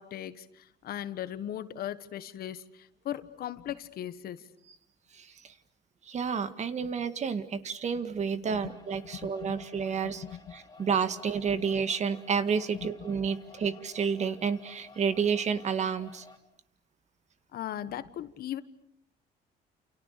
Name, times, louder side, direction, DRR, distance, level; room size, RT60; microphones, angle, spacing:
voice 1, 0.0-4.5 8.5-8.7 9.2-9.6 10.2-10.4 12.7-12.9 17.5-18.6, left 11 dB, 65° left, 13 dB, 1.5 m, -38 dB
voice 2, 5.1-5.5 6.1-10.2 10.5-16.3, right 6 dB, 45° right, 11 dB, 2.0 m, -30 dB
sound 1, 8.7-16.4, left 3 dB, 20° left, 3.8 m, -54 dB
29.5 x 29.0 x 6.7 m, 0.72 s
cardioid pair, 110°, 17 cm